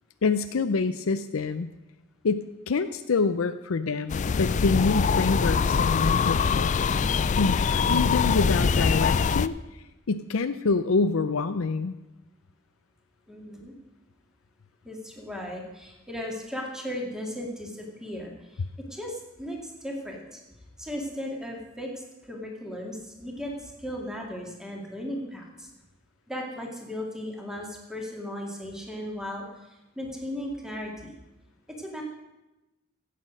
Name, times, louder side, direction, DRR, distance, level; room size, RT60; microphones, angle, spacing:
voice 1, 0.2-1.7 2.2-6.7 7.4-9.5 10.1-11.9, left 4 dB, 85° left, 9 dB, 0.5 m, -26 dB
sound 1, 4.1-9.5, left 5 dB, 35° left, 0.4 m, -23 dB
voice 2, 13.3-13.7 14.8-20.4 20.8-25.7 26.3-29.5 29.9-31.1 31.8-32.0, left 1 dB, 5° right, 0 dB, 2.2 m, -36 dB
15.5 x 8.5 x 6.3 m, 1.0 s
head